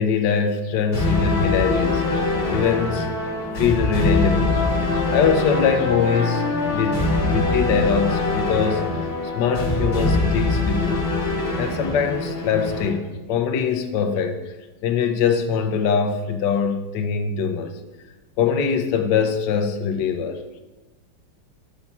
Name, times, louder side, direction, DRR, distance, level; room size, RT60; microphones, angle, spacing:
voice 1, 0.0-3.1 3.5-4.7 4.9-8.9 9.3-11.1 11.6-14.4 14.8-17.8 18.4-20.4, left 6 dB, 65° left, 6 dB, 1.2 m, -23 dB
sound 1, 0.9-12.9, left 2 dB, 35° left, 2.4 m, -23 dB
8.3 x 4.1 x 5.8 m, 1.2 s
omnidirectional pair, 2.3 m